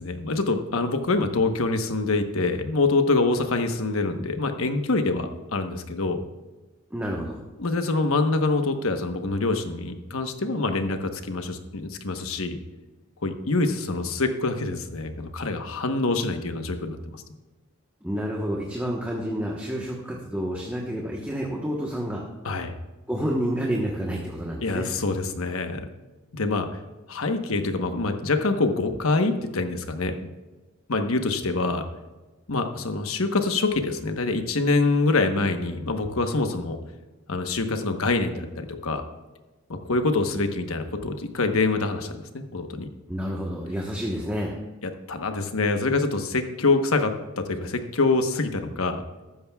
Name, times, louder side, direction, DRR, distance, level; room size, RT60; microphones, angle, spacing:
voice 1, 0.0-6.2 7.6-12.6 13.2-17.2 22.4-22.7 24.6-25.9 26.3-26.7 27.1-30.3 30.9-31.9 32.5-36.8 37.3-39.0 39.7-42.9 44.8-49.0, left 3 dB, 85° left, 6 dB, 1.1 m, -25 dB
voice 2, 6.9-7.4 18.0-22.2 23.1-24.9 43.1-44.5, equal, 10° right, -2 dB, 1.1 m, -29 dB
14.5 x 12.5 x 2.3 m, 1.2 s
head